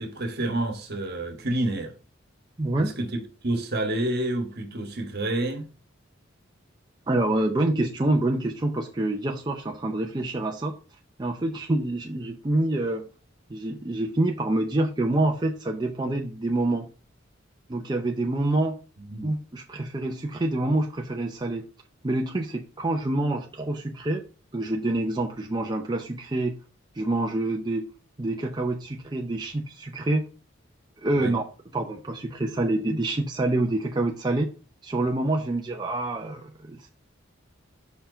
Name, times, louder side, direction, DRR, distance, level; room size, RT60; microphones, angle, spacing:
voice 1, 0.0-1.9 2.8-5.7 19.0-19.3 31.1-31.3, right 1 dB, 55° right, 1.4 m, -29 dB
voice 2, 2.6-2.9 7.1-10.7 11.2-13.1 13.5-16.9 17.7-18.8 19.2-21.6 22.0-24.2 24.5-26.6 26.9-27.9 28.2-30.3 31.0-31.4 31.7-34.5 34.8-36.9, right 2 dB, 20° right, 0.5 m, -26 dB
5.8 x 4.5 x 3.8 m
head